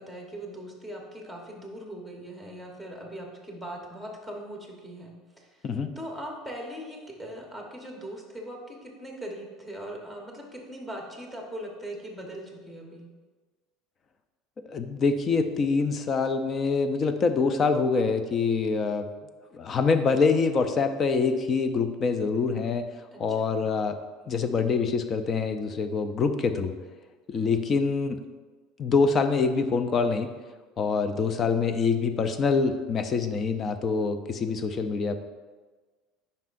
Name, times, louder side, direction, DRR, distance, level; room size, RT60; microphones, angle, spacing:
voice 1, 0.0-5.6 6.0-13.1 23.1-23.6 27.3-27.6 30.9-31.2, right 1 dB, 5° left, -1 dB, 1.1 m, -40 dB
voice 2, 14.7-19.1 19.5-22.9 23.2-24.0 24.3-26.7 27.3-28.2 28.8-30.3 30.8-35.1, left 4 dB, 30° left, 9 dB, 0.4 m, -25 dB
9.2 x 5.4 x 2.5 m, 1.3 s
cardioid pair, 155°, 0 cm